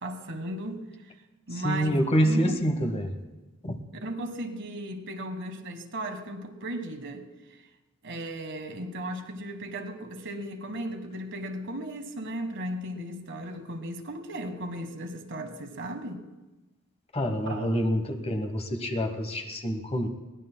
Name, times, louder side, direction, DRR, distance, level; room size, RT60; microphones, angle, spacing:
voice 1, 0.0-0.8 1.5-2.6 4.0-7.3 8.0-16.2 17.5-17.9, right 1 dB, 60° right, 6 dB, 1.4 m, -36 dB
voice 2, 1.5-3.1 3.6-3.8 17.1-20.1, equal, 30° left, 5 dB, 1.1 m, -27 dB
22.0 x 18.0 x 2.2 m, 1.1 s
head